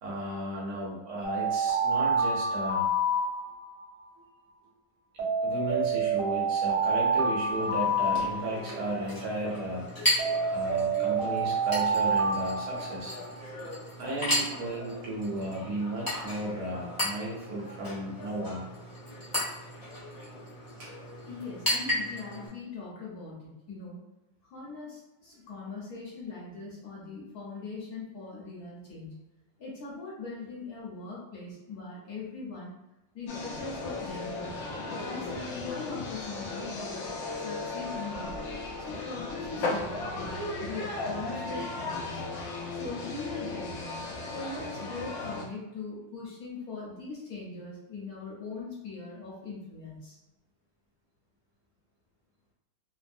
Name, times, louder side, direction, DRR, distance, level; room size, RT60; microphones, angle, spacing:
voice 1, 0.0-2.9 5.4-9.9 10.5-13.2 14.0-18.7 20.8-20.9, right 1 dB, 65° right, -4 dB, 1.1 m, -34 dB
Alarm, 1.2-3.8 5.2-8.8 10.2-13.4, right 3 dB, 40° right, 0.4 m, -28 dB
Chink clink, 7.5-22.5, left 1 dB, 30° left, 0.4 m, -35 dB
voice 2, 21.3-24.0 24.4-29.2 29.6-32.7 33.1-34.5 34.9-37.1 37.4-38.5 38.8-42.3 42.7-50.2, left 4 dB, 60° left, -5 dB, 1.1 m, -41 dB
sound 1, 33.3-45.4, left 2 dB, 85° left, 0.7 m, -36 dB
3.2 x 2.0 x 2.5 m, 0.98 s
omnidirectional pair, 2.1 m